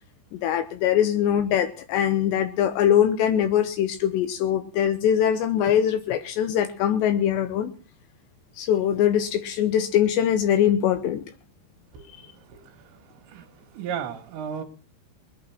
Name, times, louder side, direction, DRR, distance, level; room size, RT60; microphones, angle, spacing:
voice 1, 0.3-7.7 8.6-11.2 12.1-12.2, left 10 dB, 80° left, 9 dB, 3.0 m, -22 dB
voice 2, 12.3-14.6, right 8 dB, 75° right, 2 dB, 3.6 m, -36 dB
21.0 x 8.6 x 5.9 m, 0.37 s
omnidirectional pair, 5.3 m